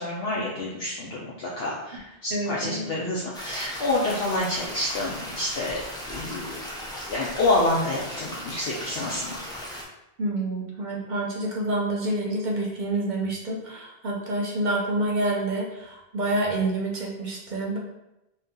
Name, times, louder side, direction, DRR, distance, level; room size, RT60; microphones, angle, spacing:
voice 1, 0.0-5.8 6.1-6.6 7.1-9.4, left 2 dB, 70° left, -5 dB, 0.8 m, -28 dB
voice 2, 2.3-2.8 10.2-17.8, right 2 dB, 50° right, -2 dB, 0.7 m, -28 dB
sound 1, 3.3-9.8, left 1 dB, 5° left, 0.3 m, -37 dB
2.7 x 2.3 x 3.6 m, 0.91 s
omnidirectional pair, 1.1 m